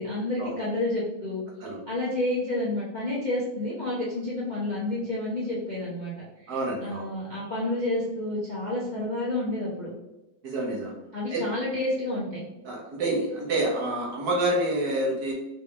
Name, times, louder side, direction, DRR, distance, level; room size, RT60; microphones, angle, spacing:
voice 1, 0.0-1.4 1.9-6.1 6.4-6.5 6.8-9.9 11.1-12.4, left 2 dB, 35° left, -7 dB, 0.7 m, -29 dB
voice 2, 6.5-7.1 10.4-10.9 11.3-11.4 12.6-15.3, right 1 dB, 55° right, -3 dB, 1.3 m, -28 dB
4.1 x 3.4 x 3.4 m, 0.99 s
omnidirectional pair, 2.2 m